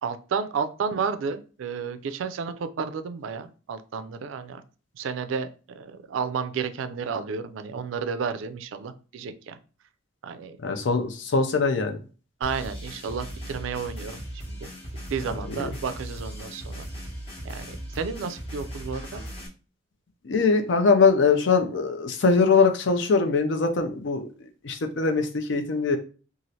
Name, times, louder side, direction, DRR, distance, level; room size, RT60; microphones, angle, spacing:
voice 1, 0.0-4.6 4.9-9.6 10.2-10.6 12.4-14.7 15.1-16.9 17.4-19.2, right 6 dB, 80° right, 11 dB, 0.3 m, -32 dB
voice 2, 10.6-12.0 15.6-15.7 20.2-24.3 24.6-26.0, left 4 dB, 65° left, 6 dB, 0.5 m, -22 dB
sound 1, 12.4-19.5, equal, 30° left, 0.7 m, -38 dB
3.1 x 2.4 x 2.7 m, 0.36 s
head